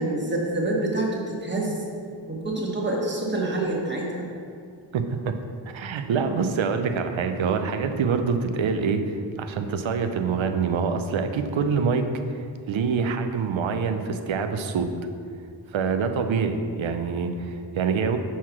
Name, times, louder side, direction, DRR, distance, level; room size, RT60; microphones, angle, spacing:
voice 1, 0.0-1.8 2.3-4.2, right 2 dB, 25° right, -2 dB, 1.4 m, -27 dB
voice 2, 4.9-5.4 5.7-14.9 15.7-18.2, right 5 dB, 85° right, 7 dB, 0.7 m, -25 dB
5.7 x 4.7 x 5.8 m, 2.3 s
wide cardioid pair, 85°, 46 cm